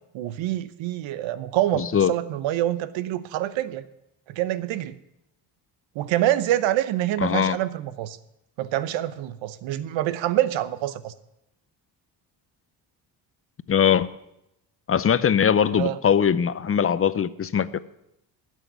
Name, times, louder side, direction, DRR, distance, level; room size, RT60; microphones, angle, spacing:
voice 1, 0.1-3.8 4.3-5.0 5.9-8.2 8.6-11.1 15.7-16.0, right 13 dB, 85° right, 15 dB, 0.8 m, -26 dB
voice 2, 1.8-2.1 7.2-7.6 13.7-14.1 14.9-17.8, left 8 dB, 30° left, 16 dB, 0.5 m, -21 dB
12.5 x 6.5 x 8.9 m, 0.85 s
cardioid pair, 85°, 45 cm